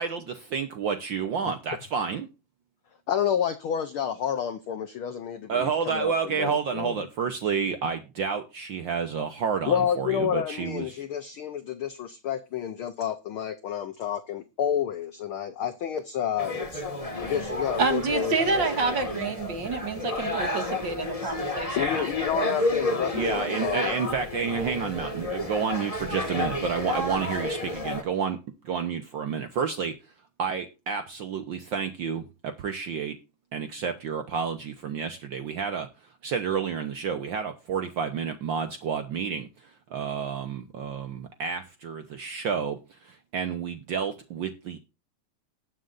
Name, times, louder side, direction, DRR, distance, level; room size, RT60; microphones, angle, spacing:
voice 1, 0.0-2.3 5.5-11.0 23.1-28.4 28.6-30.0 30.4-33.2 33.5-35.9 36.2-39.5 39.9-44.8, right 6 dB, 90° right, 1.0 m, -30 dB
voice 2, 3.1-7.0 9.7-17.0 17.2-19.0 21.8-23.9, left 9 dB, 80° left, 1.1 m, -30 dB
sound 1, 16.4-28.0, left 1 dB, 20° left, 1.1 m, -31 dB
voice 3, 17.8-22.1, right 4 dB, 40° right, 2.4 m, -28 dB
19.5 x 7.7 x 2.5 m
omnidirectional pair, 3.5 m